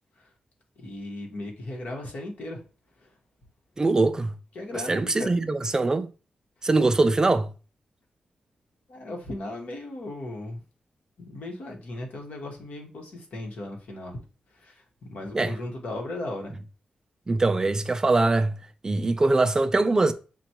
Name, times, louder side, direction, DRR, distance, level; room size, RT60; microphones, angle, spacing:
voice 1, 0.8-2.6 3.0-3.1 4.5-5.3 8.9-10.6 11.2-14.2 14.5-16.6, left 1 dB, 70° left, 1.2 m, -37 dB
voice 2, 3.8-4.3 4.9-6.1 6.6-7.5 15.3-15.5 17.3-18.5 18.8-20.1, right 3 dB, 25° right, 0.3 m, -22 dB
5.8 x 2.2 x 2.9 m
wide cardioid pair, 115°, 3 cm